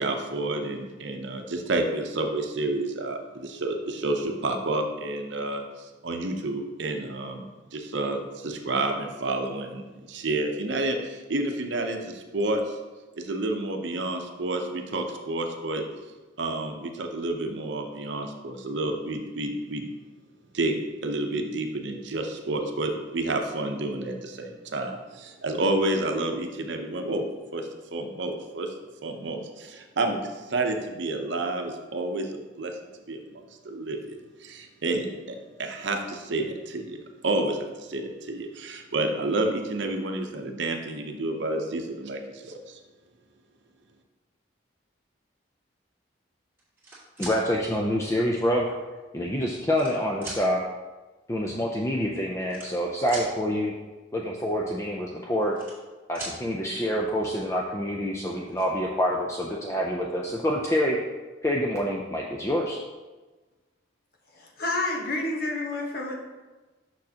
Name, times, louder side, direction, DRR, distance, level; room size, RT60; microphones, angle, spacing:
voice 1, 0.0-12.8 13.2-15.8 16.4-19.9 20.5-28.7 29.0-32.8 33.1-37.0 37.2-42.8, right 2 dB, 70° right, 4 dB, 0.7 m, -30 dB
sound 1, 46.6-47.4 48.3-48.4 49.3-49.9 50.2-50.4 51.6-51.7 51.8-52.0 52.4-53.3 55.2-55.9 56.1-56.4 57.8-57.9 58.2-58.6, right 2 dB, 10° right, 2.0 m, -39 dB
voice 2, 47.2-48.7 49.1-50.6 51.3-53.7 54.1-55.6 56.1-61.0 61.4-62.8, equal, 15° left, -2 dB, 0.4 m, -27 dB
voice 3, 64.3-66.1, left 2 dB, 50° left, -1 dB, 1.1 m, -29 dB
6.3 x 6.1 x 2.8 m, 1.2 s
head